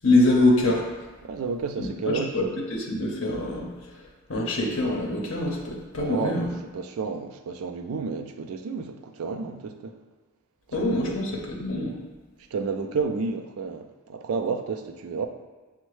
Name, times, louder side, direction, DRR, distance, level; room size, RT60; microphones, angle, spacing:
voice 1, 0.0-0.8 1.8-2.4 2.7-3.7 4.3-6.5 10.7-12.0, left 2 dB, 65° left, -1 dB, 0.7 m, -24 dB
voice 2, 1.2-2.5 6.0-6.5 6.7-10.0 11.1-11.2 12.5-15.3, right 5 dB, 85° right, 7 dB, 0.4 m, -31 dB
6.2 x 2.1 x 3.1 m, 1.3 s
head